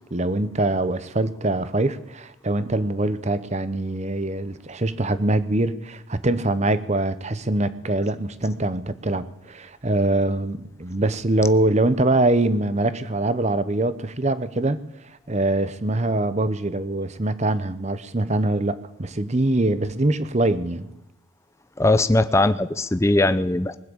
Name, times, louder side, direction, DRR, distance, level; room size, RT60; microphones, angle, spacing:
voice 1, 0.1-14.8 15.3-20.9, right 2 dB, 35° right, 13 dB, 0.9 m, -23 dB
voice 2, 21.8-23.8, left 2 dB, 15° left, 12 dB, 0.5 m, -20 dB
20.0 x 7.7 x 8.7 m, 0.92 s
head